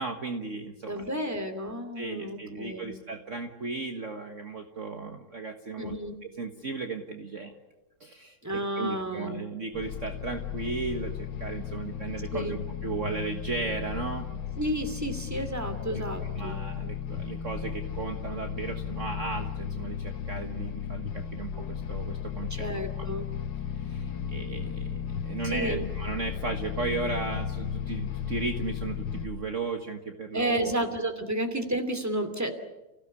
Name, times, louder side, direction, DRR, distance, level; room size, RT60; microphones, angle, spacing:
voice 1, 0.0-1.1 1.9-5.9 6.3-7.5 8.0-14.2 15.9-22.7 23.0-23.1 23.7-30.9, right 3 dB, 45° right, 4 dB, 1.7 m, -35 dB
voice 2, 0.9-3.0 5.8-6.2 8.4-9.4 12.3-12.6 14.6-16.6 22.5-23.3 25.4-25.9 30.3-32.5, right 1 dB, 10° right, 7 dB, 2.5 m, -31 dB
sound 1, 9.7-29.3, left 8 dB, 85° left, 2.0 m, -35 dB
30.0 x 16.5 x 9.6 m, 1.0 s
omnidirectional pair, 2.0 m